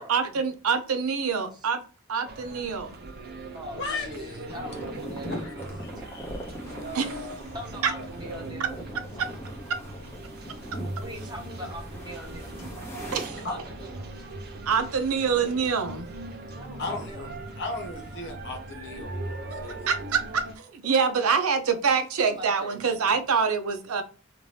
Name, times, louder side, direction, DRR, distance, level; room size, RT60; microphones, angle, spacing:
voice 1, 0.0-1.8 2.1-2.9 6.9-7.3 7.8-7.9 9.2-9.3 13.1-13.4 14.7-16.1 19.9-24.0, right 6 dB, 90° right, 0.6 m, -25 dB
sound 1, 2.2-20.6, right 2 dB, 45° right, 0.6 m, -39 dB
voice 2, 3.5-5.7 7.5-8.8 11.0-12.7 13.2-14.1 16.5-17.3 22.3-23.4, equal, 20° right, 0.9 m, -42 dB
sound 2, 4.5-13.3, equal, 10° left, 0.7 m, -42 dB
voice 3, 5.2-6.8 13.4-13.5 16.8-17.3 17.6-19.1 19.5-19.8, left 3 dB, 55° left, 1.0 m, -35 dB
2.7 x 2.5 x 3.2 m
head